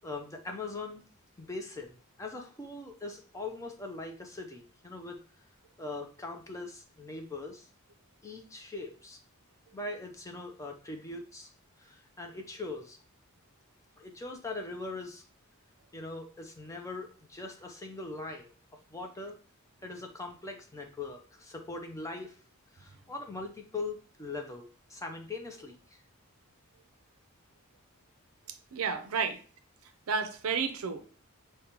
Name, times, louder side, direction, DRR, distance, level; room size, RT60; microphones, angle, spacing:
voice 1, 0.0-1.0 1.4-5.2 5.8-7.7 8.2-9.2 9.7-11.5 11.8-13.0 14.0-15.2 15.9-18.5 18.9-19.4 19.8-22.4 22.7-24.6 24.9-26.0, left 3 dB, 15° left, 3 dB, 0.5 m, -41 dB
voice 2, 28.7-29.3 30.1-31.0, right 5 dB, 65° right, 9 dB, 0.5 m, -31 dB
5.2 x 2.2 x 2.9 m, 0.39 s
head